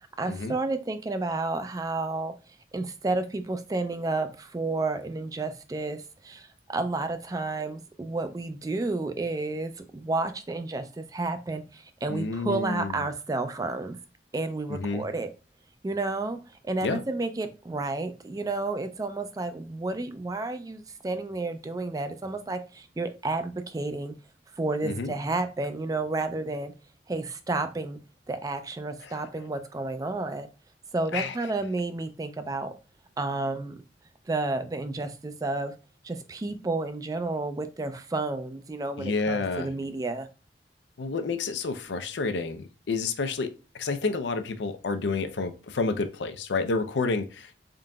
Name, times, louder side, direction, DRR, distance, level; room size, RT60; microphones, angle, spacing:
voice 1, 0.2-2.3 2.7-14.0 14.3-15.3 15.8-24.1 24.5-26.7 27.1-28.0 28.3-30.5 30.9-32.7 33.2-33.8 34.3-35.7 36.0-40.3, right 2 dB, 20° right, 0.3 m, -31 dB
voice 2, 12.1-13.1 14.7-15.0 16.8-17.0 24.8-25.1 29.0-29.1 31.1-31.4 39.0-39.7 41.0-47.6, left 4 dB, 80° left, 0.5 m, -30 dB
3.8 x 3.7 x 2.2 m
head